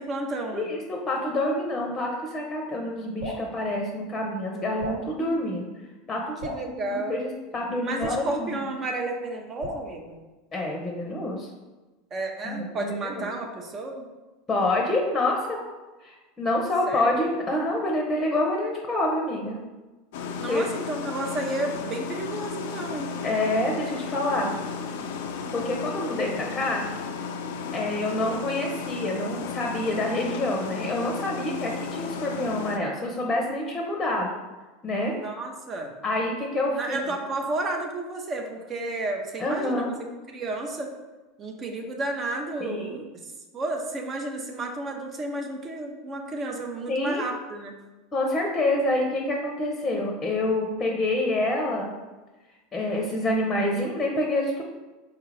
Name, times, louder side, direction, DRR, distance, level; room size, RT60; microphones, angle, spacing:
voice 1, 0.0-0.7 6.4-7.2 7.8-10.2 12.1-14.0 16.9-17.2 20.4-23.1 35.1-35.9 36.7-39.9 40.3-40.9 41.4-43.0 43.5-47.7, right 2 dB, 35° right, 2 dB, 0.6 m, -32 dB
voice 2, 0.5-5.7 6.1-8.6 10.5-11.5 12.4-13.3 14.5-15.6 16.0-19.6 20.5-20.7 23.2-24.5 25.5-26.8 27.7-34.3 34.8-35.1 36.0-37.1 39.4-39.9 42.6-43.0 46.9-47.2 48.1-51.9 52.7-54.6, left 1 dB, 20° left, 0 dB, 0.7 m, -27 dB
Drip, 3.2-3.5 4.8-5.1 6.4-6.7 8.0-8.3 9.6-9.9, equal, 70° right, 1.3 m, -34 dB
sound 1, 20.1-32.8, left 5 dB, 65° left, 0.3 m, -34 dB
4.6 x 2.4 x 3.2 m, 1.2 s
hypercardioid pair, 85°, 0 cm